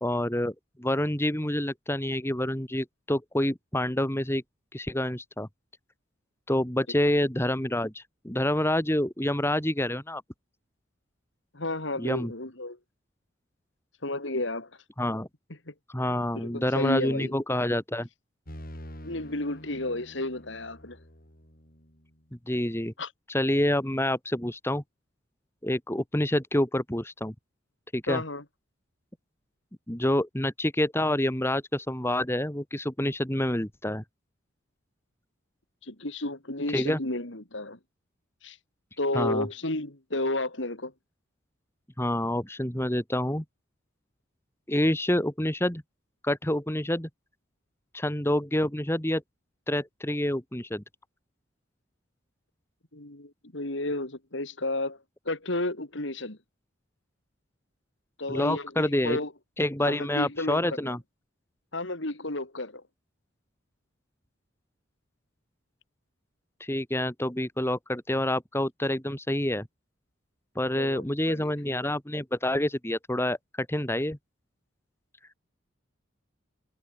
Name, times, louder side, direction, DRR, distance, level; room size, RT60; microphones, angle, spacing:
voice 1, 0.0-4.4 4.7-5.5 6.5-10.2 12.0-12.3 15.0-15.3 15.9-18.1 22.5-22.9 23.3-24.8 25.6-27.3 27.9-28.2 29.9-34.0 36.7-37.0 39.1-39.5 42.0-43.4 44.7-45.8 46.2-47.1 47.9-49.2 49.7-50.8 58.3-59.2 59.6-61.0 66.6-69.7 70.6-74.2, left 1 dB, 10° left, 2.3 m, -27 dB
voice 2, 11.5-12.8 14.0-14.7 15.7-15.8 16.3-17.3 19.0-21.0 23.0-23.1 28.1-28.4 35.8-37.8 38.4-38.6 39.0-40.9 52.9-55.0 55.2-56.4 58.2-59.3 59.8-61.0 61.7-62.8 70.7-71.5, left 2 dB, 65° left, 3.3 m, -32 dB
sound 1, 18.5-22.2, equal, 45° left, 7.1 m, -46 dB
head